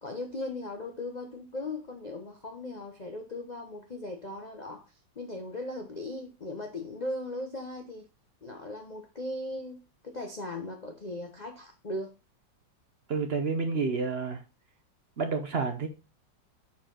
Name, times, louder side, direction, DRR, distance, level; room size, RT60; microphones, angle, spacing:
voice 1, 0.0-4.9 5.2-8.1 8.4-12.1, left 2 dB, 75° left, 0.4 m, -38 dB
voice 2, 13.1-14.4 15.2-15.9, right 4 dB, 55° right, 0.7 m, -29 dB
6.5 x 4.2 x 3.8 m
omnidirectional pair, 2.0 m